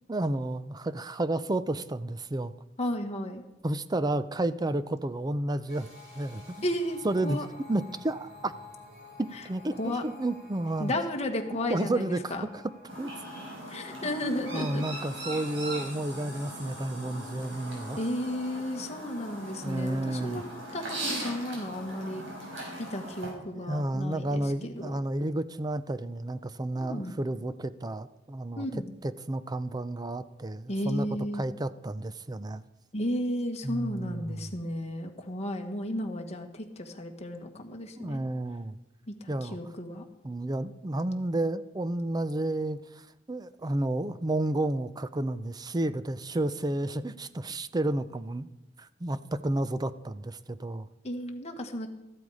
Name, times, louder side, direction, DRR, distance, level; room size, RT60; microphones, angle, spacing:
voice 1, 0.1-2.5 3.6-5.9 6.2-6.7 7.0-7.4 7.7-8.5 9.2-10.9 11.7-12.6 13.0-13.1 14.0-14.1 14.5-18.1 19.6-20.4 23.5-28.7 29.0-31.1 31.3-32.6 33.6-34.5 38.0-38.8 39.3-39.6 40.2-48.5 48.8-50.9, right 1 dB, 20° right, 14 dB, 0.5 m, -31 dB
voice 2, 2.8-3.4 6.6-7.5 9.8-10.0 10.8-12.5 13.7-14.8 18.0-22.2 22.8-24.9 26.8-27.1 28.5-28.9 30.7-31.4 32.9-38.2 39.1-40.1 51.0-51.9, left 1 dB, 35° left, 3 dB, 1.6 m, -33 dB
sound 1, 5.7-23.1, left 2 dB, 45° right, 5.9 m, -50 dB
Chirp tweet, 12.9-23.3, right 1 dB, 75° right, 5.4 m, -40 dB
14.0 x 12.0 x 4.9 m, 1.0 s
head